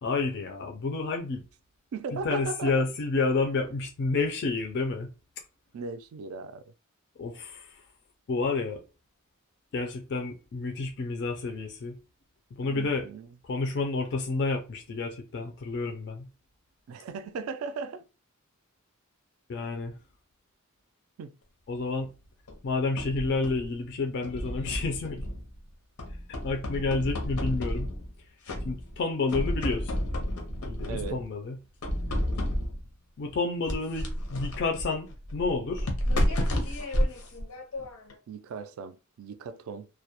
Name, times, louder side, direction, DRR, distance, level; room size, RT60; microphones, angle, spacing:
voice 1, 0.0-1.4 2.1-5.1 7.2-7.7 8.3-8.8 9.7-11.9 12.6-13.1 13.5-16.3 19.5-19.9 21.7-22.1 22.6-25.2 26.4-27.9 28.6-29.9 30.6-31.6 33.2-35.9, left 3 dB, 50° left, 0.3 m, -30 dB
voice 2, 1.9-2.9 5.7-6.6 12.6-13.3 16.9-18.0 21.2-21.4 30.9-31.3 38.3-39.9, right 4 dB, 75° right, 0.3 m, -37 dB
sound 1, 22.5-23.7 24.2-25.6 26.0-28.1 28.5-29.0 29.3-31.3 31.8-32.9 33.7-38.2, equal, 85° left, 0.7 m, -31 dB
2.2 x 2.0 x 2.8 m
head